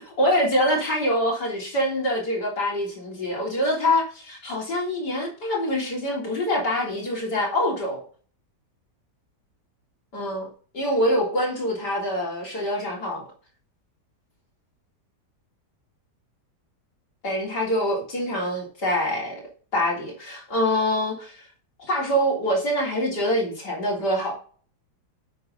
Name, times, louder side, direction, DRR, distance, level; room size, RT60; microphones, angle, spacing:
voice 1, 0.0-8.0 10.1-10.5 10.7-13.2 17.2-19.4 19.7-21.5 21.8-24.3, equal, 70° left, 4.1 m, -25 dB
9.0 x 8.4 x 3.9 m
omnidirectional pair, 1.8 m